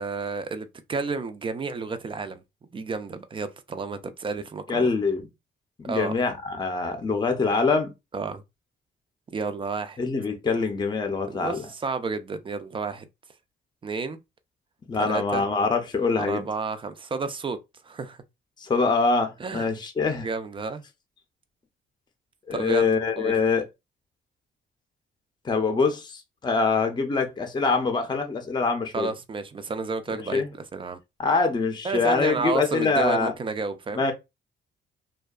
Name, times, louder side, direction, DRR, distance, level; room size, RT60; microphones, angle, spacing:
voice 1, 0.0-2.4 2.7-4.9 5.9-6.2 8.1-8.4 9.3-10.0 11.3-13.1 13.8-14.2 15.0-15.4 16.2-17.6 17.8-18.2 19.4-19.7 20.2-20.8 22.5-22.9 23.2-23.3 28.9-31.0 31.8-34.0, right 4 dB, 25° right, 0.3 m, -31 dB
voice 2, 4.7-5.2 5.8-7.9 10.0-11.6 14.9-16.5 18.6-20.3 22.5-23.6 25.4-29.1 30.1-30.5 31.2-33.3 33.9-34.1, left 4 dB, 20° left, 0.5 m, -24 dB
2.6 x 2.3 x 2.3 m
cardioid pair, 90°, 20 cm